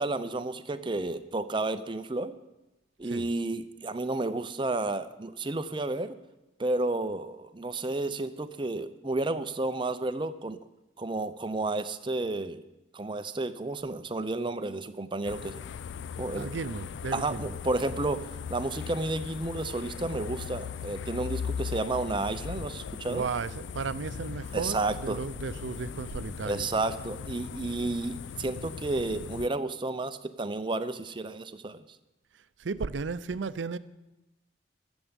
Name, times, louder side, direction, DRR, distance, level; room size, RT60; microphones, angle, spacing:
voice 1, 0.0-2.3 3.0-6.1 6.6-10.6 11.0-12.6 12.9-15.6 16.2-16.5 17.1-18.2 18.5-23.2 24.5-25.2 26.4-31.8, right 2 dB, 25° right, 0.6 m, -31 dB
sound 1, 15.2-29.5, left 7 dB, 75° left, 0.4 m, -39 dB
voice 2, 16.3-17.6 23.0-26.7 32.6-33.8, right 4 dB, 85° right, 0.6 m, -34 dB
13.5 x 7.2 x 8.1 m
head